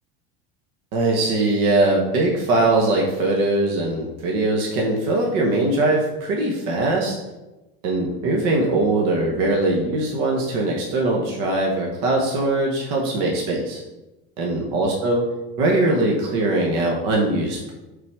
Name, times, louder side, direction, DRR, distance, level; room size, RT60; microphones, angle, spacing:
voice 1, 0.9-7.2 7.8-13.8 14.4-15.3 15.6-17.7, right 2 dB, 50° right, -1 dB, 1.1 m, -21 dB
5.9 x 4.0 x 4.7 m, 1.0 s
cardioid pair, 180°, 32 cm